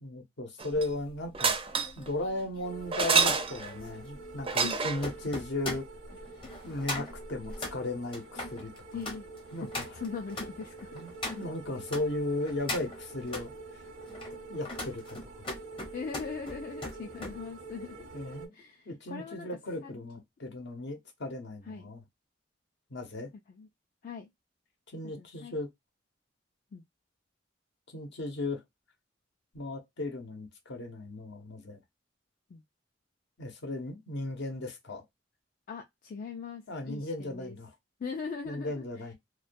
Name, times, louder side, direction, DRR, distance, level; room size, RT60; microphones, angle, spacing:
voice 1, 0.0-1.6 2.0-5.8 6.6-9.0 9.5-9.9 10.9-13.8 14.5-15.5 18.1-18.5 18.9-22.0 22.9-23.3 24.9-25.7 27.9-28.6 29.5-31.8 33.4-35.0 36.7-37.7 38.4-39.1, left 2 dB, 65° left, 0.8 m, -36 dB
sound 1, 0.6-1.0 1.3-2.1 2.9-3.8 4.5-5.1 7.2-7.3 7.5-7.6, right 5 dB, 30° right, 0.4 m, -27 dB
sound 2, 1.7-12.1 12.4-13.5 14.0-17.4 17.7-18.0, left 2 dB, 30° left, 0.8 m, -41 dB
sound 3, 2.6-18.5, right 3 dB, 80° right, 0.7 m, -47 dB
voice 2, 8.9-9.3 9.6-10.9 11.3-11.5 15.9-18.1 18.5-19.5 19.8-19.9 21.7-21.9 23.5-23.7 24.0-24.3 25.0-25.5 26.7-26.8 32.5-32.6 35.7-37.6 38.0-39.0, left 5 dB, 45° left, 0.3 m, -40 dB
2.2 x 2.2 x 2.5 m
head